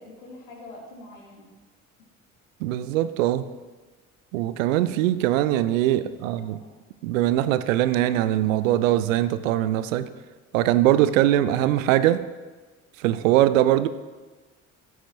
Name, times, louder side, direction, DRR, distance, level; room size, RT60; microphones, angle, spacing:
voice 1, 0.0-1.5 6.0-6.7, left 2 dB, 70° left, -2 dB, 2.8 m, -45 dB
voice 2, 2.6-3.5 4.3-6.6 7.0-10.1 10.5-12.2 13.0-13.9, right 13 dB, 70° right, 14 dB, 0.6 m, -21 dB
15.5 x 8.1 x 3.0 m, 1.3 s
figure-of-eight pair, 50°, 42 cm